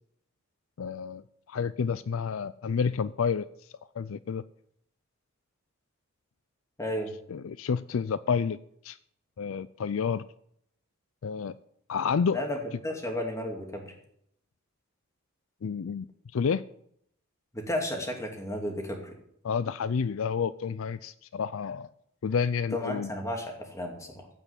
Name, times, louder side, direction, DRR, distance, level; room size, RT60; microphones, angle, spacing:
voice 1, 0.8-1.2 1.5-3.5 4.0-4.4 7.3-8.6 8.8-9.0 9.4-10.2 11.2-11.5 11.9-12.4 15.6-16.1 16.3-16.6 19.4-21.9 22.2-23.1, left 6 dB, 70° left, 15 dB, 0.4 m, -29 dB
voice 2, 6.8-7.1 12.3-13.9 17.5-19.1 22.7-24.3, left 1 dB, 15° left, 2 dB, 2.5 m, -33 dB
15.0 x 5.8 x 8.3 m, 0.70 s
head